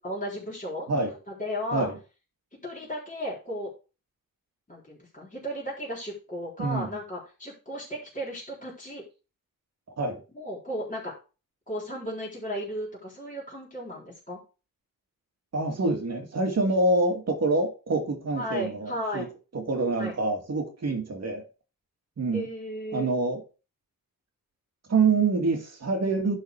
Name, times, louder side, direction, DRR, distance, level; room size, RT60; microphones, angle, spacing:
voice 1, 0.0-1.9 2.6-3.7 4.7-9.0 10.3-11.1 11.7-14.4 18.4-19.3 20.0-20.1 22.3-23.1, equal, 25° left, -5 dB, 3.8 m, -35 dB
voice 2, 15.5-19.3 19.5-21.5 22.2-22.5 22.9-23.4 24.9-26.4, right 3 dB, 50° right, 4 dB, 2.3 m, -26 dB
11.0 x 4.6 x 4.7 m, 0.32 s
wide cardioid pair, 140°, 34 cm